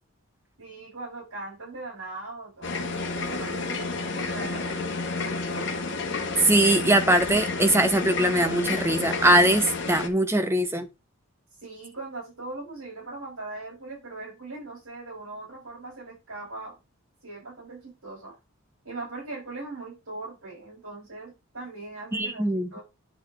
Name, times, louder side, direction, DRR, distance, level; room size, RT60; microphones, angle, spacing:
voice 1, 0.6-5.7 11.6-16.8 17.2-18.4 18.8-22.8, right 2 dB, 80° right, 5.5 m, -40 dB
sound 1, 2.6-10.1, left 3 dB, 55° left, 1.3 m, -30 dB
voice 2, 6.4-10.9 22.1-22.7, right 1 dB, 10° right, 0.8 m, -21 dB
8.9 x 6.4 x 3.2 m
head